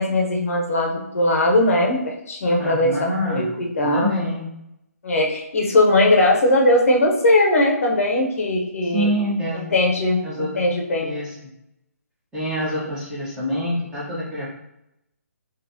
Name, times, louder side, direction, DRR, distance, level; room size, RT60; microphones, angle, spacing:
voice 1, 0.0-4.1 5.0-9.1 9.7-11.1, left 1 dB, 60° left, 0 dB, 0.9 m, -19 dB
voice 2, 2.6-3.5 3.8-4.5 8.8-9.6 10.2-10.5 11.0-11.3 12.3-14.5, equal, 5° right, -8 dB, 1.2 m, -26 dB
3.9 x 3.4 x 2.8 m, 0.85 s
figure-of-eight pair, 145°, 9 cm